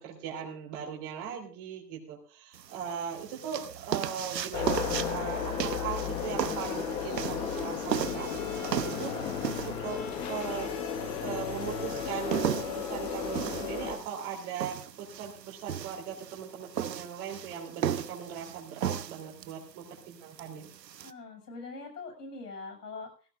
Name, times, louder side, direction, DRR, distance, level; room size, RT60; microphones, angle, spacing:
voice 1, 0.0-8.3 8.8-9.1 9.6-10.0 10.3-20.7, right 7 dB, 20° right, 0 dB, 3.2 m, -39 dB
sound 1, 2.5-21.1, right 9 dB, 80° right, 0.9 m, -36 dB
sound 2, 4.5-14.0, left 6 dB, 10° left, 0.9 m, -34 dB
sound 3, 7.9-13.2, left 12 dB, 30° left, 2.3 m, -43 dB
voice 2, 10.2-10.5 21.0-23.3, left 3 dB, 70° left, 3 dB, 6.8 m, -43 dB
18.5 x 16.5 x 2.5 m, 0.37 s
hypercardioid pair, 150°, 50 cm